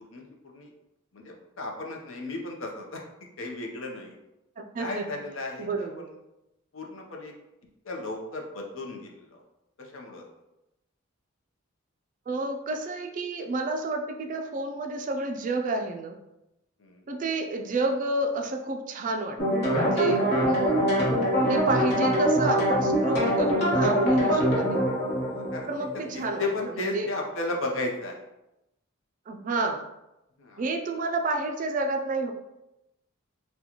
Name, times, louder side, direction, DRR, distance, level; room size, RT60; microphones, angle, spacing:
voice 1, 1.1-3.0 3.4-4.2 4.8-6.1 6.7-7.3 7.8-9.4 9.8-10.2 16.8-17.0 25.3-28.1 30.4-30.6, left 2 dB, 70° left, 1 dB, 0.6 m, -34 dB
voice 2, 4.6-5.1 5.6-6.1 12.3-16.2 17.1-19.4 19.7-20.8 21.5-24.8 25.7-26.5 26.7-27.1 29.3-29.9 30.6-32.3, right 2 dB, 40° right, 4 dB, 0.3 m, -30 dB
sound 1, 19.4-26.4, equal, 50° left, 1.0 m, -24 dB
3.7 x 2.2 x 2.9 m, 0.92 s
head